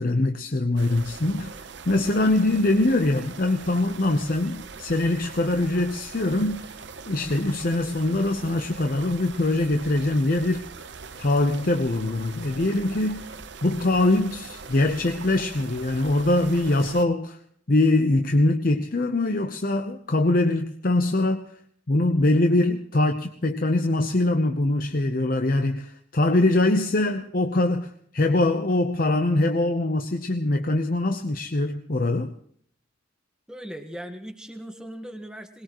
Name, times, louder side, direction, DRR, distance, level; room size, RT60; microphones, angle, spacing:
voice 1, 0.0-6.8 7.1-10.6 11.2-13.3 13.6-17.4 17.7-21.4 21.9-32.3, left 2 dB, 45° left, 6 dB, 0.8 m, -23 dB
sound 1, 0.8-17.1, right 4 dB, 65° right, 0.8 m, -41 dB
voice 2, 33.5-35.6, equal, 5° right, 5 dB, 1.4 m, -38 dB
21.5 x 20.0 x 3.1 m, 0.63 s
head